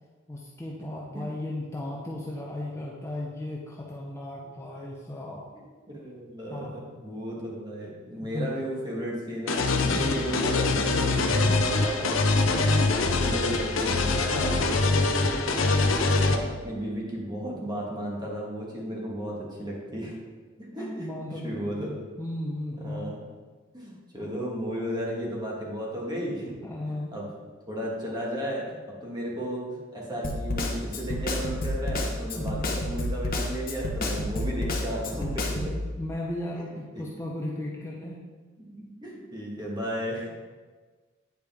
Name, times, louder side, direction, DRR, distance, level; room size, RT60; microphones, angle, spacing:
voice 1, 0.3-5.4 6.5-6.7 8.2-8.5 9.9-10.3 12.4-12.9 20.8-23.2 26.6-27.1 32.4-32.7 35.6-38.2, left 1 dB, 15° left, -4 dB, 0.7 m, -35 dB
voice 2, 5.5-20.1 20.6-21.1 21.4-21.9 22.8-23.2 23.7-26.5 26.9-27.3 27.7-35.6 36.6-37.0 38.6-40.3, equal, 20° right, -4 dB, 1.6 m, -34 dB
sound 1, 9.5-16.4, left 3 dB, 75° left, 0.7 m, -24 dB
Snare drum, 30.2-35.7, left 1 dB, 45° left, 0.9 m, -29 dB
9.1 x 5.0 x 3.5 m, 1.4 s
head